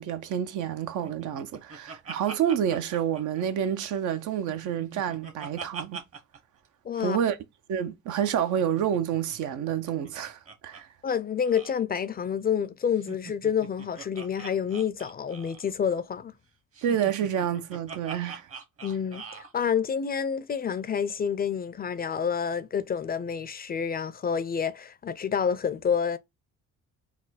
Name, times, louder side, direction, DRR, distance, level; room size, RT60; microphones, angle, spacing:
voice 1, 0.0-6.0 7.0-7.4 7.7-10.9 16.8-18.5, right 9 dB, 80° right, 0.7 m, -28 dB
Laughter, 1.0-4.0 4.3-6.4 6.6-6.7 6.9-7.2 8.4-10.8 11.1-11.2 11.5-11.8 12.9-15.7 16.7-19.5, right 5 dB, 50° right, 1.1 m, -43 dB
voice 2, 6.8-7.2 11.0-16.3 18.8-26.2, left 7 dB, 30° left, 0.4 m, -28 dB
4.2 x 2.3 x 4.1 m
cardioid pair, 90°, 30 cm